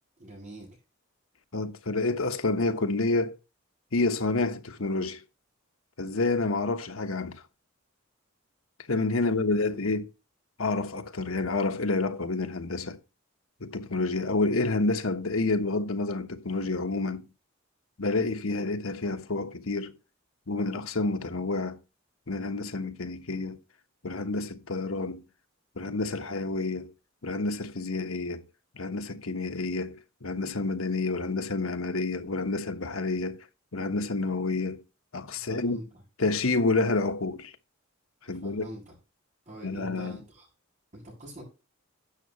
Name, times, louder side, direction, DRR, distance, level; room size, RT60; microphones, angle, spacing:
voice 1, 0.2-0.7 9.3-9.4 9.7-9.9 35.3-36.0 38.2-39.0 39.5-40.5 40.9-41.4, right 1 dB, 40° right, 7.2 m, -44 dB
voice 2, 1.5-3.4 3.9-5.2 6.0-7.4 8.9-10.1 10.6-13.0 13.6-17.3 18.0-19.9 20.5-21.8 22.3-23.6 24.0-25.2 25.8-26.9 27.2-28.5 28.7-33.4 33.7-34.8 35.1-35.8 36.2-37.5 38.2-38.7 39.6-40.1, left 3 dB, 90° left, 1.3 m, -29 dB
12.0 x 8.0 x 3.1 m
head